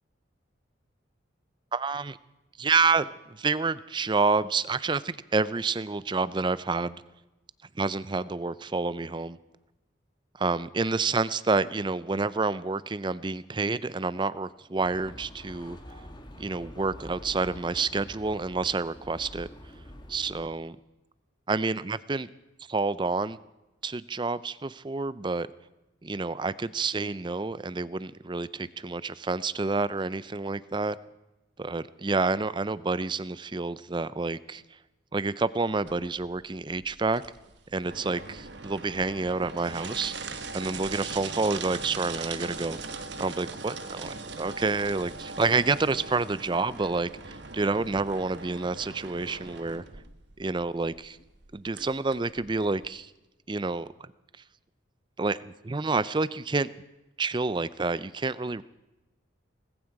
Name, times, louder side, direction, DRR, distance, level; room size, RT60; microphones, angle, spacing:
voice 1, 1.7-2.2 2.6-7.0 7.8-9.4 10.4-15.8 16.4-19.5 20.1-20.8 21.5-22.3 22.7-23.4 23.8-25.5 26.0-31.0 31.6-34.6 35.1-37.2 37.7-40.2 40.5-49.8 50.4-51.2 51.5-53.1 53.5-53.9 55.2-56.7 57.2-58.6, right 3 dB, 25° right, 17 dB, 0.4 m, -28 dB
sound 1, 14.8-20.4, equal, 20° left, 1.5 m, -46 dB
sound 2, 35.9-52.9, right 4 dB, 60° right, 1.1 m, -40 dB
19.0 x 15.0 x 4.7 m, 1.0 s
head